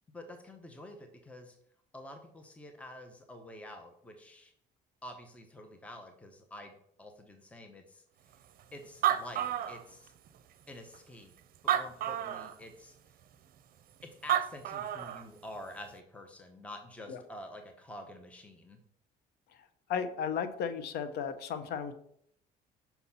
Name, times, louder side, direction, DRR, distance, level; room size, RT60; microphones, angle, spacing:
voice 1, 0.1-1.6 1.9-4.5 5.0-6.7 7.0-8.0 8.7-10.1 10.7-11.3 11.6-13.0 14.2-18.8, left 1 dB, 10° left, 5 dB, 0.8 m, -48 dB
Animal, 8.6-8.7 8.9-10.3 10.9-11.0 11.6-12.6 14.0-14.1 14.3-15.2, right 11 dB, 60° right, 0.6 m, -30 dB
voice 2, 19.9-21.9, left 7 dB, 75° left, 11 dB, 0.8 m, -34 dB
5.8 x 4.1 x 5.6 m, 0.68 s
cardioid pair, 110°, 17 cm